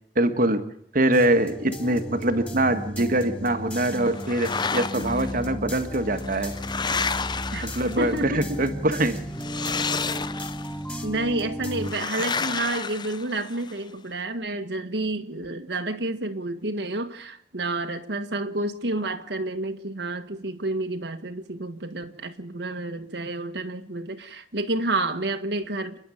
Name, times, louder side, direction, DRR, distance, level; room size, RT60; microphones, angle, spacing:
voice 1, 0.2-0.6 0.9-6.5 7.6-8.3 8.6-9.2, right 1 dB, 55° right, 1.7 m, -23 dB
sound 1, 1.1-11.9, equal, 10° left, 3.5 m, -34 dB
sound 2, 4.1-5.3 6.1-8.3 9.3-10.8 11.8-13.7, left 5 dB, 25° left, 0.7 m, -30 dB
voice 2, 8.0-8.6 11.0-26.0, right 2 dB, 70° right, 1.7 m, -29 dB
30.0 x 11.0 x 8.6 m
head